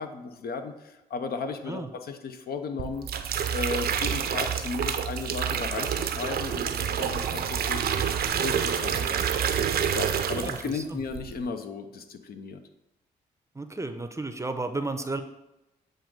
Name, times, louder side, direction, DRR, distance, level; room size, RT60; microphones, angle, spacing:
voice 1, 0.0-3.1 3.5-7.9 8.4-9.1 9.9-12.6, left 4 dB, 60° left, 7 dB, 0.6 m, -35 dB
sound 1, 2.8-10.8 11.1-11.5, right 8 dB, 60° right, 0.5 m, -28 dB
voice 2, 10.4-11.0 13.5-15.2, right 3 dB, 15° right, 7 dB, 0.6 m, -33 dB
7.5 x 2.6 x 5.1 m, 0.94 s
supercardioid pair, 50°, 18 cm